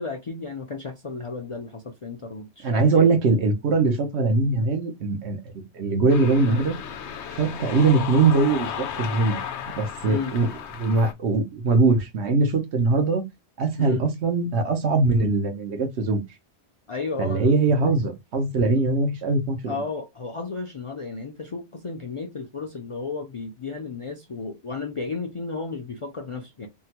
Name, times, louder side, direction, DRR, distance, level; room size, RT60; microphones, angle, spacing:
voice 1, 0.0-3.1 10.0-10.4 13.8-14.0 16.9-17.5 19.7-26.7, left 4 dB, 50° left, 0.4 m, -33 dB
voice 2, 2.6-6.8 7.4-9.4 9.8-10.5 10.8-13.2 13.6-16.2 17.2-19.8, right 3 dB, 80° right, 1.1 m, -21 dB
sound 1, 6.1-11.1, left 8 dB, 90° left, 0.9 m, -34 dB
3.6 x 2.0 x 2.8 m
omnidirectional pair, 1.1 m